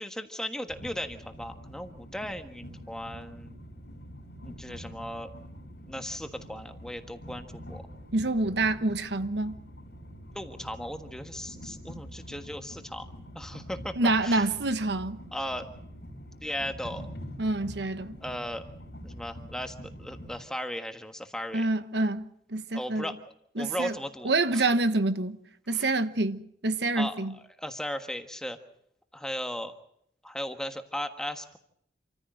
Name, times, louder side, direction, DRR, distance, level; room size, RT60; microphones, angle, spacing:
voice 1, 0.0-3.6 4.4-5.3 5.9-7.8 10.3-13.1 13.3-14.5 15.3-15.7 16.4-17.1 18.2-18.6 19.0-21.7 22.7-23.1 23.6-24.7 25.7-25.9 27.0-28.6 29.1-29.7 30.2-31.6, equal, 5° left, 1.5 m, -37 dB
Train, 0.7-20.4, equal, 70° left, 4.1 m, -45 dB
voice 2, 8.1-9.6 14.0-15.2 17.4-18.2 21.5-22.2 22.5-23.1 23.6-24.0 24.2-25.4 25.7-27.3, right 2 dB, 75° right, 1.2 m, -27 dB
27.5 x 15.0 x 7.8 m
head